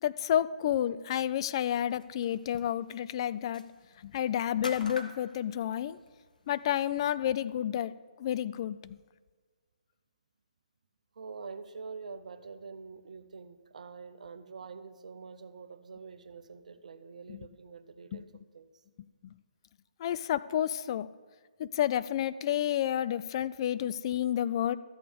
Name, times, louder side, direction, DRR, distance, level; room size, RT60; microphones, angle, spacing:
voice 1, 0.0-3.6 4.0-6.0 6.5-9.0 17.3-17.4 19.2-19.3 20.0-21.1 21.6-24.8, left 10 dB, 40° left, 15 dB, 0.3 m, -30 dB
sound 1, 1.8-6.9, left 3 dB, 80° left, 1.2 m, -48 dB
voice 2, 11.1-18.8, right 5 dB, 60° right, 12 dB, 0.7 m, -46 dB
13.5 x 8.4 x 3.5 m, 1.5 s
figure-of-eight pair, 135°, 4 cm